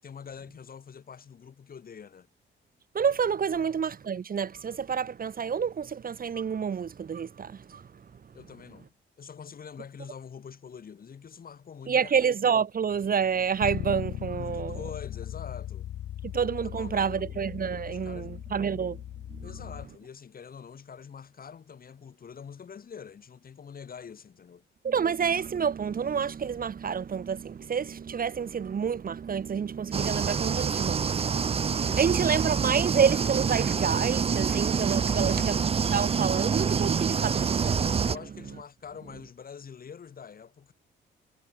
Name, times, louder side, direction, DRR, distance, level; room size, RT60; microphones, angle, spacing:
voice 1, 0.0-2.3 3.5-3.7 8.3-8.9 9.2-12.1 14.4-15.9 16.8-17.3 17.8-18.3 19.4-24.6 31.8-32.5 35.1-35.5 38.1-40.7, left 7 dB, 45° left, 5.0 m, -45 dB
voice 2, 2.9-8.3 11.9-14.8 16.2-19.0 19.3-19.5 24.8-38.1, right 7 dB, 45° right, 3.2 m, -29 dB
Bass guitar, 13.6-19.9, left 12 dB, 75° left, 3.1 m, -38 dB
sound 1, 29.9-38.2, right 6 dB, 30° right, 0.6 m, -26 dB
cardioid pair, 90°, 20 cm